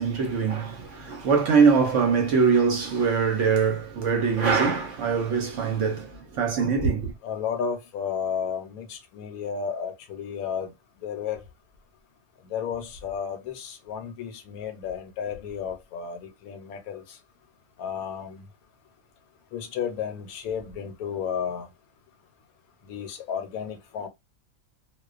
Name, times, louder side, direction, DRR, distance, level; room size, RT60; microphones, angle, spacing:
voice 1, 0.0-7.1, right 5 dB, 65° right, 0.9 m, -23 dB
voice 2, 7.2-10.7 11.0-11.4 12.4-17.0 17.8-18.4 19.5-21.7 22.8-24.1, left 7 dB, 80° left, 1.0 m, -32 dB
2.3 x 2.2 x 2.4 m
omnidirectional pair, 1.6 m